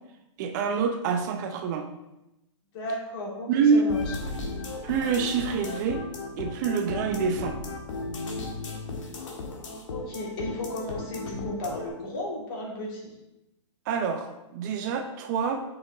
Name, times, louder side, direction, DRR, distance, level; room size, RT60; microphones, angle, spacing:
voice 1, 0.4-1.9 3.5-3.8 4.8-6.0 6.4-7.6 13.9-15.6, right 6 dB, 35° right, 6 dB, 0.6 m, -26 dB
voice 2, 2.7-4.2 9.9-13.1, left 1 dB, 45° left, -3 dB, 2.7 m, -34 dB
sound 1, 3.9-11.9, left 3 dB, 75° left, 1.8 m, -35 dB
6.5 x 5.9 x 3.7 m, 0.93 s
hypercardioid pair, 140°, 16 cm